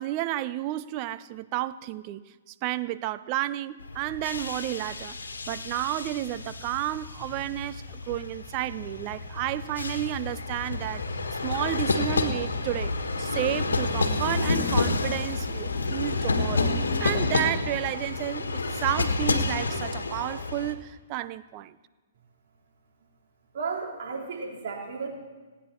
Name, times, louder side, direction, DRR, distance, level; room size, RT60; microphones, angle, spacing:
voice 1, 0.0-5.2 5.5-11.0 11.4-16.7 17.0-21.8, right 14 dB, 40° right, 14 dB, 0.6 m, -31 dB
sound 1, 3.8-20.7, left 3 dB, 85° left, 1.5 m, -29 dB
voice 2, 23.5-25.1, right 4 dB, 60° right, -2 dB, 3.9 m, -33 dB
28.0 x 9.4 x 4.5 m, 1.3 s
hypercardioid pair, 125°, 0 cm